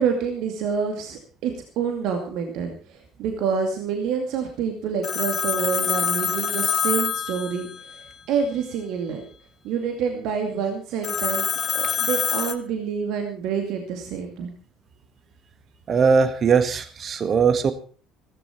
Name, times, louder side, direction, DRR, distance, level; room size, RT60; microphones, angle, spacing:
voice 1, 0.0-7.7 8.3-9.2 9.6-11.5 11.7-14.5, right 6 dB, 60° right, 4 dB, 2.4 m, -27 dB
Telephone, 5.0-8.1 11.0-12.5, left 7 dB, 40° left, 1.3 m, -25 dB
voice 2, 15.9-17.7, right 5 dB, 40° right, 10 dB, 1.8 m, -20 dB
16.0 x 14.5 x 4.5 m, 0.39 s
figure-of-eight pair, 55°, 0 cm